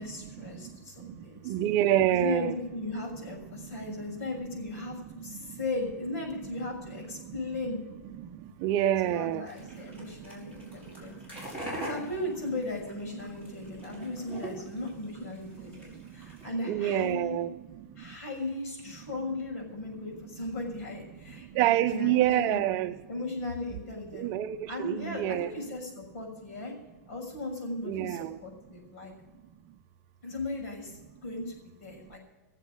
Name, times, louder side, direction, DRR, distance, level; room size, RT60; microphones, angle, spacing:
voice 1, 0.0-1.5 2.1-7.8 9.0-17.5 18.0-22.6 23.1-24.3 24.7-26.7 27.1-29.1 30.2-32.2, left 2 dB, 60° left, 6.4 m, -37 dB
voice 2, 1.4-2.5 2.9-3.0 3.8-3.9 4.9-5.0 8.1-9.4 16.7-17.5 21.5-22.9 24.1-25.5 27.8-28.4, right 13 dB, 35° right, 0.7 m, -27 dB
sound 1, 9.5-16.5, right 1 dB, 15° left, 4.9 m, -43 dB
17.5 x 7.5 x 7.7 m
supercardioid pair, 160°, 9 cm